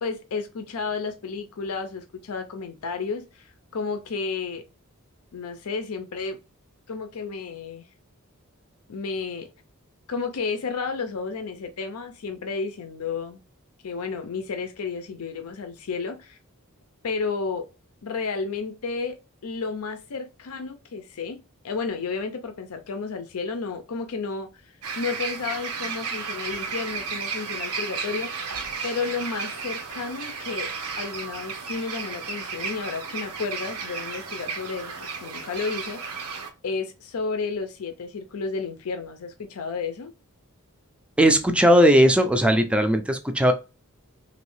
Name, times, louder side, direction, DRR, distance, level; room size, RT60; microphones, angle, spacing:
voice 1, 0.0-4.6 5.3-6.4 6.9-7.8 8.9-9.5 10.1-13.4 13.8-16.4 17.0-17.7 18.0-19.2 19.4-28.6 28.8-30.7 31.0-34.9 35.2-36.3 36.6-40.1, left 4 dB, 80° left, 0.5 m, -32 dB
sound 1, 24.8-36.5, right 5 dB, 85° right, 0.8 m, -33 dB
voice 2, 41.2-43.5, equal, 5° right, 0.4 m, -18 dB
3.0 x 2.7 x 3.1 m
head